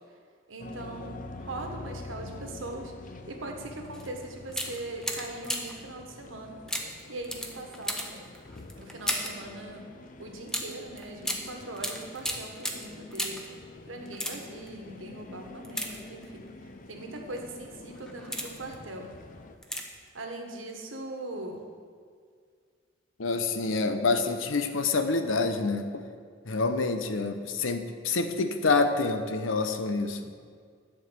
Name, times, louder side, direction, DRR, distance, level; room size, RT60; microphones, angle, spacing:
voice 1, 0.5-6.6 7.1-8.0 8.8-9.9 10.2-13.4 13.9-19.1 20.1-21.7, right 2 dB, 80° right, 2 dB, 1.4 m, -40 dB
sound 1, 0.6-19.6, left 2 dB, 45° left, 0.6 m, -46 dB
sound 2, 3.9-4.1 4.5-5.9 6.7-9.5 10.5-13.6 14.0-14.7 15.6-16.5 17.2-17.4 17.9-18.7 19.6-20.1 20.3-20.4, equal, 5° left, 0.8 m, -35 dB
voice 2, 23.2-26.0 26.5-30.3, left 3 dB, 85° left, 8 dB, 0.8 m, -27 dB
10.5 x 4.7 x 7.9 m, 2.1 s
head